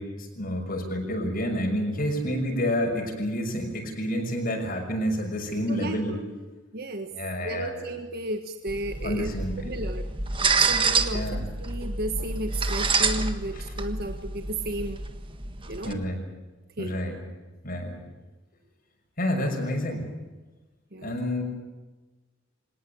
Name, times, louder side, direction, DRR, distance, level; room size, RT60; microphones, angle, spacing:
voice 1, 0.0-6.2 7.1-7.8 9.0-9.7 11.1-11.5 13.5-13.7 15.8-16.2 16.8-17.2 17.6-18.0 19.2-20.1 21.0-21.4, equal, 50° left, 3 dB, 6.1 m, -29 dB
voice 2, 5.7-6.2 6.7-7.1 7.4-9.3 9.6-10.1 10.6-15.0 15.7-16.0 16.8-17.0 20.9-21.1, right 1 dB, 55° right, 6 dB, 1.5 m, -33 dB
sound 1, 8.7-15.9, right 4 dB, 25° right, 1.6 m, -28 dB
25.5 x 19.0 x 8.7 m, 1.2 s
head